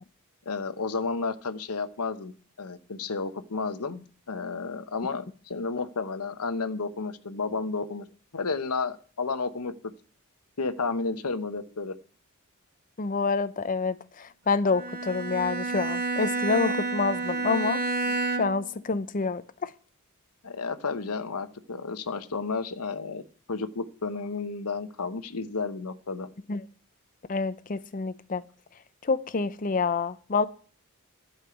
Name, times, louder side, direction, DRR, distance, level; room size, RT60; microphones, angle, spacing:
voice 1, 0.5-2.3 2.6-8.1 8.3-9.7 10.6-11.9 18.0-18.2 20.4-23.2 23.5-26.3, left 4 dB, 80° left, 11 dB, 0.9 m, -32 dB
voice 2, 13.0-17.8 18.4-19.7 26.5-26.6 27.3-28.4 29.0-30.5, left 4 dB, 35° left, 13 dB, 0.5 m, -27 dB
Bowed string instrument, 14.7-18.8, right 3 dB, 50° right, 1.8 m, -30 dB
11.5 x 5.5 x 8.0 m, 0.42 s
head